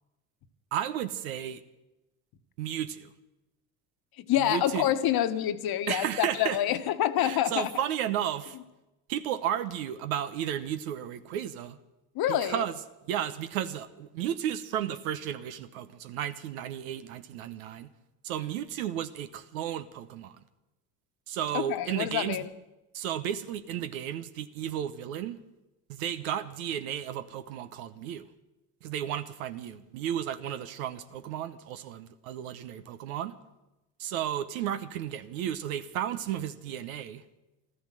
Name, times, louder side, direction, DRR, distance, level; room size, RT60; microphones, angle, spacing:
voice 1, 0.7-1.6 2.6-3.1 4.4-4.9 5.9-6.6 7.2-8.6 9.1-11.8 12.3-12.8 13.1-17.9 18.2-20.4 21.3-22.5 22.9-25.4 25.9-28.3 28.8-33.3 34.0-37.2, right 10 dB, 90° right, 10 dB, 1.0 m, -33 dB
voice 2, 4.2-7.7 12.1-12.6 21.5-22.5, left 12 dB, 60° left, 9 dB, 1.4 m, -27 dB
14.0 x 13.0 x 7.6 m, 0.98 s
supercardioid pair, 80°, 41 cm